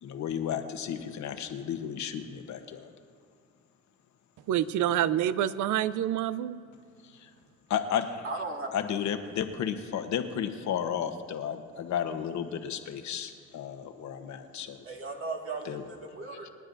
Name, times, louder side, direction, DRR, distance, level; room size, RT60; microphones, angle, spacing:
voice 1, 0.0-2.9 7.1-7.3 7.7-8.2 8.7-14.7 15.6-15.8, left 8 dB, 70° left, 6 dB, 1.1 m, -33 dB
voice 2, 4.5-6.6, right 11 dB, 80° right, 16 dB, 0.6 m, -27 dB
voice 3, 8.2-8.7 14.9-16.5, right 3 dB, 45° right, 0 dB, 2.0 m, -36 dB
28.5 x 9.7 x 2.7 m, 2.3 s
cardioid pair, 90°, 30 cm